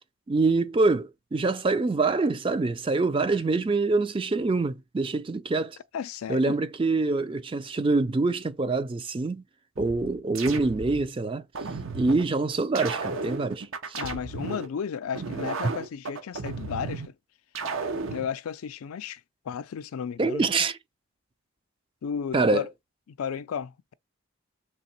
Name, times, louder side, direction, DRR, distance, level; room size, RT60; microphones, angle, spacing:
voice 1, 0.3-5.8 6.3-9.4 9.8-11.4 11.9-14.0 20.2-20.8 22.3-22.6, right 3 dB, 25° right, 0.3 m, -25 dB
voice 2, 5.9-6.6 13.9-17.1 18.1-19.2 19.5-20.4 22.0-22.7 23.2-23.9, left 7 dB, 90° left, 0.4 m, -33 dB
sound 1, 9.8-11.1 11.6-12.3 12.8-14.7 15.2-17.1 17.6-18.3, right 4 dB, 70° right, 0.8 m, -34 dB
3.3 x 2.9 x 4.2 m
head